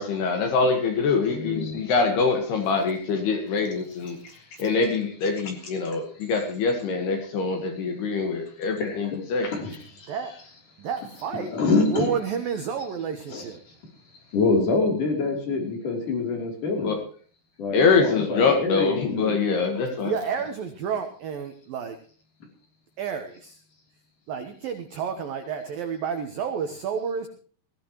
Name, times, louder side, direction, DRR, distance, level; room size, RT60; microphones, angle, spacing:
voice 1, 0.0-4.2 4.6-9.5 16.8-17.0 17.7-20.1, left 4 dB, 60° left, 5 dB, 3.2 m, -24 dB
voice 2, 1.3-1.8 8.8-9.2 9.5-9.8 11.3-12.1 13.3-13.5 14.3-17.0 17.6-19.4, left 3 dB, 45° left, 2 dB, 4.5 m, -26 dB
voice 3, 10.1-10.4 10.8-11.6 11.9-13.6 20.0-22.0 23.0-23.6 24.3-27.3, right 6 dB, 80° right, 7 dB, 2.0 m, -30 dB
21.0 x 15.0 x 3.1 m, 0.43 s
omnidirectional pair, 5.8 m